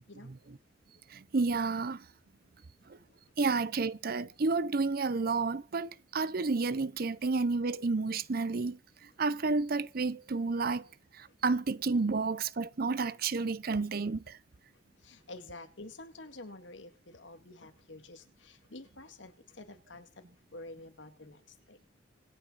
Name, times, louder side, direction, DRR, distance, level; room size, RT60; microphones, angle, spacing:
voice 1, 1.1-2.0 3.4-8.8 9.2-10.9 11.2-14.4, right 4 dB, 55° right, 0.7 m, -30 dB
voice 2, 15.0-20.2 20.5-21.4 21.7-21.9, left 2 dB, 90° left, 2.1 m, -49 dB
25.5 x 9.1 x 4.1 m
head